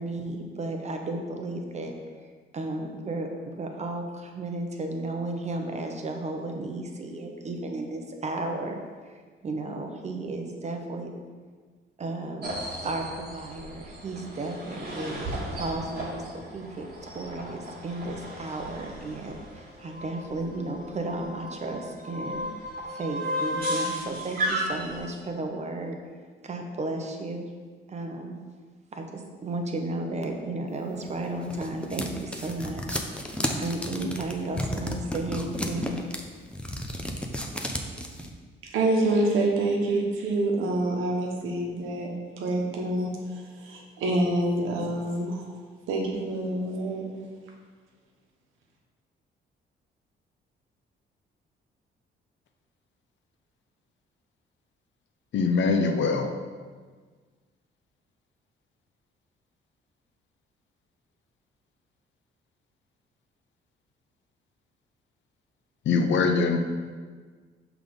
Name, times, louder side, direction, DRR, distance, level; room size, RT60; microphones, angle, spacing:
voice 1, 0.0-1.9 2.5-11.1 12.0-12.5 12.8-15.2 15.5-22.4 22.9-26.0 26.4-27.5 27.9-28.4 28.9-33.0 33.6-36.0, right 2 dB, 35° right, 3 dB, 0.9 m, -34 dB
sound 1, 12.4-25.1, equal, 50° right, 1.9 m, -35 dB
sound 2, 31.0-38.3, left 1 dB, 5° left, 0.6 m, -33 dB
voice 2, 38.7-42.1 42.4-43.1 43.7-45.4 45.9-47.1, right 2 dB, 85° right, 0 dB, 1.1 m, -26 dB
voice 3, 55.3-56.3 65.9-66.6, left 4 dB, 70° left, 5 dB, 0.7 m, -23 dB
5.9 x 3.6 x 5.2 m, 1.5 s
cardioid pair, 90°, 20 cm